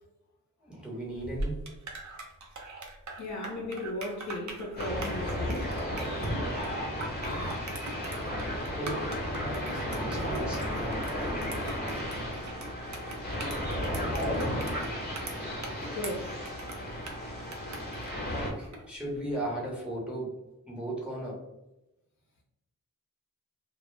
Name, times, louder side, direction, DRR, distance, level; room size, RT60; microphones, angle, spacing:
voice 1, 0.6-1.8 8.8-11.6 18.0-20.3 20.7-21.4, right 1 dB, 5° right, 0.9 m, -37 dB
sound 1, 1.1-18.9, right 2 dB, 55° right, 0.6 m, -42 dB
voice 2, 3.2-5.8 14.0-14.1 15.8-16.4, left 1 dB, 55° left, 0.6 m, -36 dB
sound 2, 4.8-18.5, equal, 30° left, 0.9 m, -33 dB
2.2 x 2.0 x 3.1 m
wide cardioid pair, 75°, 34 cm